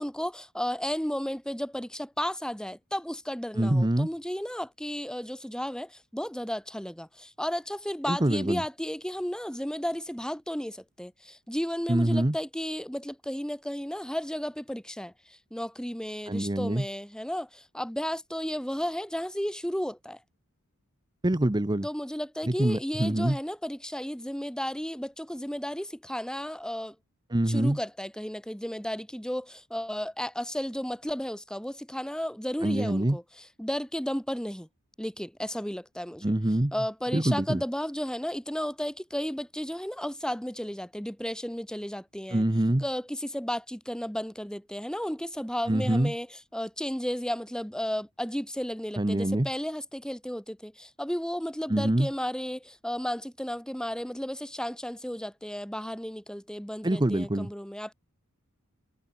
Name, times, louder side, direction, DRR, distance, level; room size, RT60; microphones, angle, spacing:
voice 1, 0.0-20.2 21.8-27.0 27.5-33.2 33.6-34.7 35.0-36.3 36.7-42.4 42.8-46.3 46.5-57.9, equal, 5° left, 1.8 m, -33 dB
voice 2, 3.6-4.1 8.1-8.6 11.9-12.4 16.3-16.9 21.2-21.9 22.5-23.4 27.3-27.8 32.6-33.2 36.2-36.7 37.1-37.6 42.3-42.8 45.7-46.1 49.0-49.5 51.7-52.1 56.8-57.5, right 1 dB, 20° right, 0.9 m, -25 dB
head